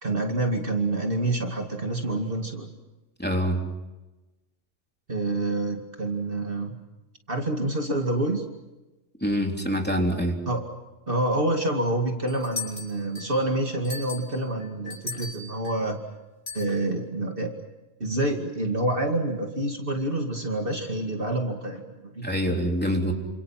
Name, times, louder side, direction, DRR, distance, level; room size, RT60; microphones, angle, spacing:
voice 1, 0.0-2.7 5.1-6.8 7.3-8.5 10.5-10.6 11.1-16.0 16.5-17.6 18.0-22.7, right 1 dB, 45° right, 3 dB, 2.5 m, -27 dB
voice 2, 3.2-3.6 9.2-10.4 22.2-23.1, equal, 10° left, 1 dB, 3.5 m, -25 dB
sound 1, 12.3-13.4 13.8-15.8 16.5-16.7, left 3 dB, 75° left, 5.9 m, -37 dB
29.0 x 27.0 x 5.9 m, 1.1 s
omnidirectional pair, 1.3 m